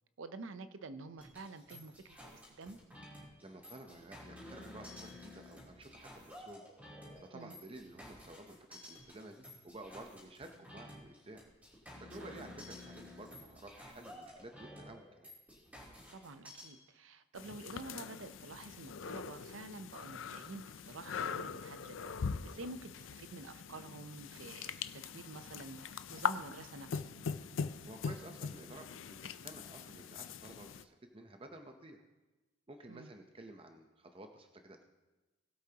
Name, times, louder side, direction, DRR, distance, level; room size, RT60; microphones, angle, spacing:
voice 1, 0.2-2.8 7.3-7.6 12.2-12.3 16.1-22.1 22.4-27.1 32.9-33.1, right 3 dB, 85° right, 11 dB, 0.6 m, -49 dB
sound 1, 1.2-16.7, left 1 dB, 10° right, 3.1 m, -53 dB
voice 2, 3.4-6.6 7.2-11.5 12.0-15.3 27.8-28.9 29.2-32.0 32.7-34.8, right 1 dB, 30° right, 5 dB, 0.7 m, -52 dB
sound 2, 17.4-30.8, left 6 dB, 85° left, 0.5 m, -42 dB
20.0 x 8.3 x 2.9 m, 1.1 s
head